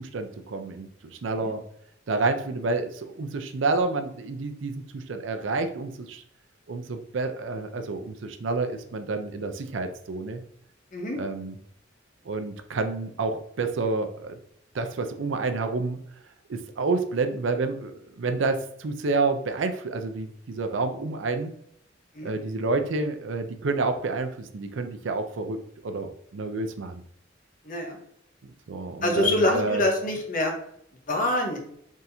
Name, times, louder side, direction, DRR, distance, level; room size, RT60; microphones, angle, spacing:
voice 1, 0.0-1.6 2.1-6.2 6.7-10.4 11.2-11.6 12.3-14.4 14.7-16.0 16.5-21.6 22.2-27.0 28.7-29.8, right 3 dB, 80° right, 7 dB, 0.5 m, -29 dB
voice 2, 27.6-28.0 29.0-30.5 31.1-31.6, left 1 dB, 45° left, 1 dB, 1.0 m, -25 dB
4.2 x 3.6 x 2.7 m, 0.69 s
head